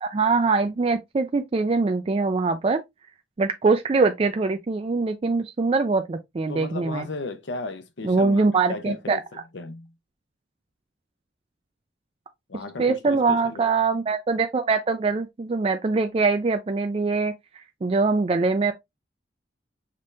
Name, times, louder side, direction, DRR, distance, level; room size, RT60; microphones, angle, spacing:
voice 1, 0.0-2.8 3.4-7.1 8.0-9.2 12.8-17.3 17.8-18.7, right 4 dB, 30° right, 0.3 m, -23 dB
voice 2, 6.5-8.4 8.7-9.9 12.5-13.6, left 3 dB, 75° left, 0.7 m, -35 dB
5.2 x 3.2 x 2.6 m
head